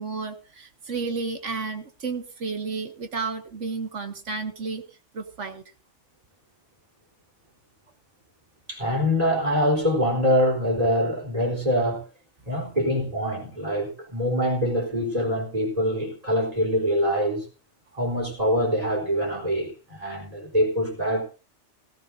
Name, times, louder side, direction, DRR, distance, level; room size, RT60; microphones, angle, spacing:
voice 1, 0.0-4.8 5.1-5.6, right 4 dB, 85° right, 2.0 m, -32 dB
voice 2, 8.7-12.0 12.5-17.5 17.9-21.2, equal, 30° right, 4.0 m, -24 dB
18.0 x 15.0 x 2.6 m
omnidirectional pair, 1.2 m